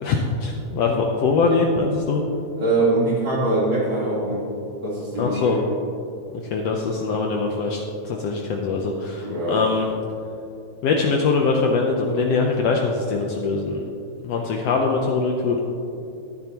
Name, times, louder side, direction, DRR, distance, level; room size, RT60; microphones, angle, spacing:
voice 1, 0.0-2.2 5.2-5.6 6.5-9.9 10.8-13.8 14.2-15.6, left 4 dB, 70° left, 1 dB, 1.6 m, -22 dB
voice 2, 2.6-4.4 4.8-5.6 9.2-9.6, right 2 dB, 40° right, -7 dB, 2.9 m, -23 dB
12.5 x 10.5 x 2.9 m, 2.7 s
omnidirectional pair, 3.3 m